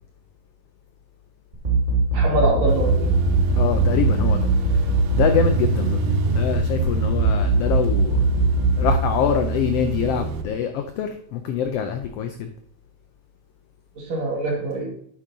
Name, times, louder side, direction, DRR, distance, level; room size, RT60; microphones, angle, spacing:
sound 1, 1.5-8.9, right 4 dB, 40° right, 0.7 m, -21 dB
voice 1, 2.1-3.1 14.0-14.9, right 1 dB, 65° right, -1 dB, 3.1 m, -24 dB
sound 2, 2.7-10.4, right 4 dB, 90° right, 2.2 m, -27 dB
voice 2, 3.6-4.5 5.1-6.0 6.3-8.2 8.8-12.5, left 9 dB, 85° left, 7 dB, 1.3 m, -24 dB
8.9 x 7.5 x 2.7 m, 0.66 s
omnidirectional pair, 3.4 m